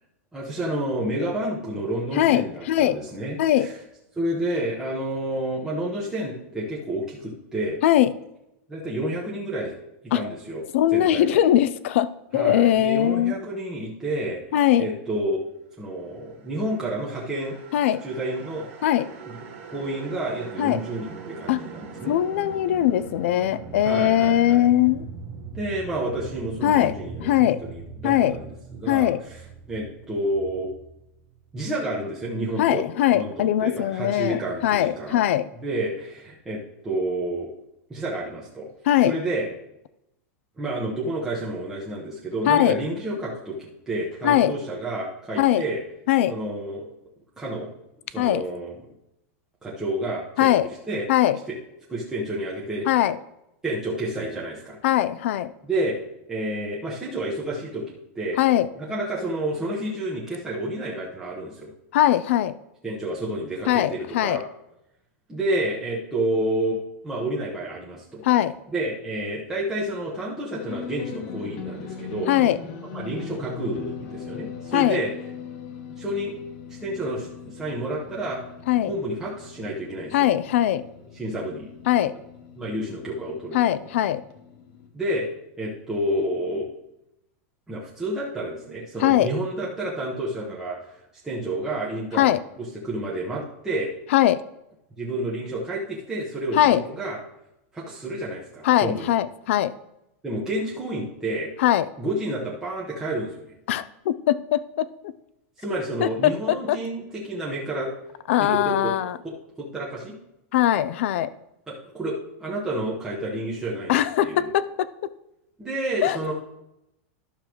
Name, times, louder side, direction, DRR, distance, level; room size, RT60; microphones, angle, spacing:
voice 1, 0.3-3.7 4.2-7.8 8.7-9.7 10.0-10.6 10.9-11.4 12.3-14.4 14.8-15.4 15.8-17.6 18.0-18.7 19.3-22.2 23.8-24.6 25.5-29.1 29.7-30.7 31.5-32.8 33.1-35.2 35.6-37.5 37.9-38.7 39.0-39.5 40.6-45.8 46.3-46.9 47.4-47.7 48.1-48.7 49.6-50.5 50.9-51.0 51.9-52.9 53.6-54.8 55.6-56.0 56.3-58.4 58.8-61.7 62.8-64.4 65.3-68.2 68.7-72.3 72.9-75.1 76.0-76.4 76.8-78.4 78.9-80.3 81.1-81.7 82.6-83.6 84.9-85.3 85.6-86.7 87.7-90.8 91.2-92.3 92.6-93.9 95.0-97.2 97.7-99.1 100.2-101.5 102.0-103.5 105.6-107.9 108.4-108.9 109.2-110.2 111.7-114.5 115.6-116.3, right 1 dB, 5° right, -6 dB, 1.1 m, -30 dB
voice 2, 2.1-3.0 3.4-3.7 7.8-8.1 10.1-10.2 10.7-13.4 14.5-14.9 17.7-18.0 18.8-19.1 20.6-20.8 21.5-21.6 22.0-25.1 26.6-27.6 28.0-28.4 28.9-29.2 32.6-35.5 38.9-39.1 42.5-42.8 44.2-44.5 45.4-45.6 46.1-46.4 48.2-48.4 50.4-50.7 51.1-51.4 52.9-53.2 54.8-55.5 58.4-58.7 61.9-62.6 63.7-64.4 68.2-68.5 72.3-72.6 74.7-75.0 78.7-78.9 80.1-80.8 81.9-82.1 83.5-84.2 89.0-89.3 92.1-92.4 94.1-94.4 96.5-96.8 98.6-99.7 101.6-101.9 103.7-105.1 106.0-106.8 108.3-109.2 110.5-111.3 113.9-115.1 116.0-116.2, left 12 dB, 65° left, 16 dB, 0.5 m, -21 dB
sound 1, 16.4-31.6, right 5 dB, 65° right, 1.8 m, -41 dB
sound 2, 70.5-84.9, left 6 dB, 40° left, 1.2 m, -40 dB
12.0 x 6.7 x 3.1 m, 0.86 s
supercardioid pair, 175°, 7 cm